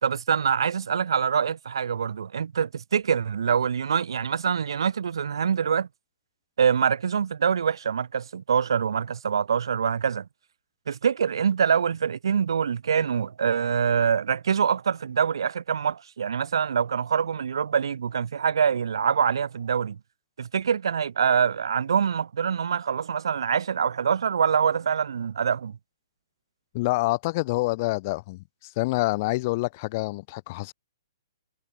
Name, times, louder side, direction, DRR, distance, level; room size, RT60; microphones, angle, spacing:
voice 1, 0.0-5.9 6.6-10.3 10.9-20.0 20.4-25.8, right 7 dB, 75° right, 2.7 m, -25 dB
voice 2, 26.7-28.4 28.8-30.7, left 22 dB, 30° left, 1.3 m, -26 dB
hypercardioid pair, 165°, 2 cm